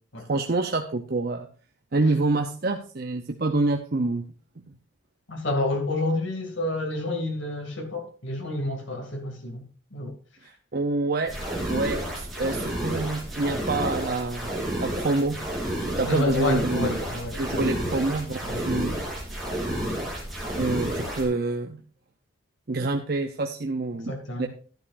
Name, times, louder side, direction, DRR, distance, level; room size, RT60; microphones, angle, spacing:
voice 1, 0.3-1.5 1.9-4.3 10.7-11.4 11.7-14.5 14.8-15.4 16.0-16.9 17.4-19.0 20.5-21.8 22.7-24.5, right 2 dB, 50° right, 4 dB, 0.7 m, -27 dB
voice 2, 5.3-9.6 9.9-10.1 16.1-17.8 18.5-18.9 24.1-24.5, left 2 dB, 70° left, 3 dB, 2.5 m, -29 dB
sound 1, 11.3-21.3, right 1 dB, ahead, 3.6 m, -31 dB
11.5 x 11.0 x 2.5 m, 0.41 s
head